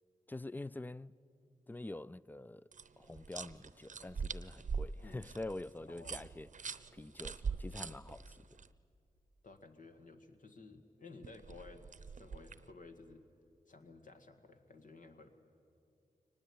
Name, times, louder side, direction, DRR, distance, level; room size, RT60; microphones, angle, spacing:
voice 1, 0.3-1.2 1.7-2.6 3.0-8.4, left 2 dB, 15° left, 0.5 m, -46 dB
sound 1, 2.7-8.7 11.2-12.7, right 5 dB, 60° right, 0.8 m, -43 dB
voice 2, 5.9-6.2 9.4-13.3 13.7-15.4, left 3 dB, 65° left, 1.9 m, -55 dB
23.5 x 19.5 x 8.7 m
cardioid pair, 40°, 14 cm